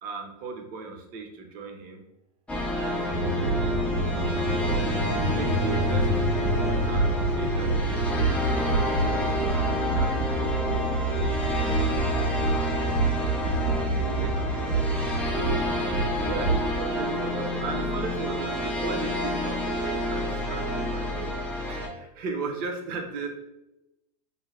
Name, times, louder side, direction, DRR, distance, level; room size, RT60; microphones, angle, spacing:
voice 1, 0.0-2.0 2.7-3.4 4.3-6.1 6.4-12.4 12.8-13.3 13.6-14.8 15.3-15.6 16.2-21.3 21.7-23.4, right 4 dB, 45° right, 3 dB, 0.7 m, -37 dB
sound 1, 2.5-21.9, left 1 dB, 5° left, 0.5 m, -29 dB
sound 2, 3.1-16.6, right 2 dB, 80° right, 0.9 m, -27 dB
2.5 x 2.2 x 3.2 m, 0.92 s
hypercardioid pair, 110°, 20 cm